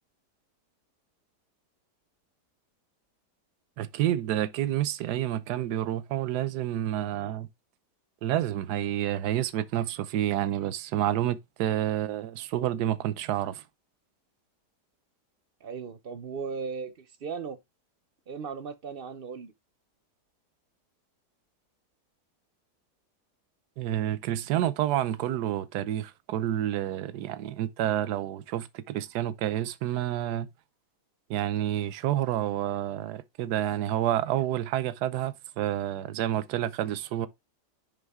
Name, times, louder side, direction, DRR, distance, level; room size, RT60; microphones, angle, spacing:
voice 1, 3.8-7.5 8.2-13.6 23.8-30.5 31.3-37.3, right 12 dB, 80° right, 1.2 m, -29 dB
voice 2, 15.6-17.6 18.3-19.5, right 5 dB, 45° right, 0.7 m, -37 dB
10.5 x 3.6 x 3.6 m
omnidirectional pair, 1.7 m